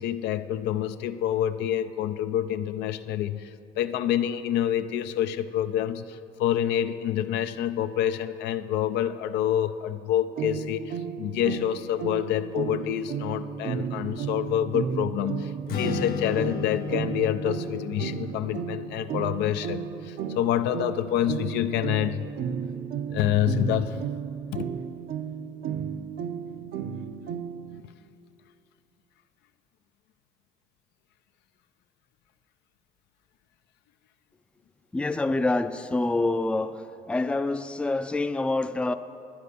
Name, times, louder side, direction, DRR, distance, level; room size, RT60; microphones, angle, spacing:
voice 1, 0.0-22.3 23.1-24.0 24.5-24.6, left 11 dB, 85° left, 10 dB, 0.5 m, -27 dB
sound 1, 10.4-27.8, right 7 dB, 65° right, 0.7 m, -34 dB
Strum, 15.7-22.0, left 6 dB, 65° left, 1.1 m, -36 dB
voice 2, 34.9-36.8 37.1-38.9, left 2 dB, 5° left, 10 dB, 0.4 m, -26 dB
11.5 x 9.5 x 6.8 m, 2.7 s
cardioid pair, 110°, 17 cm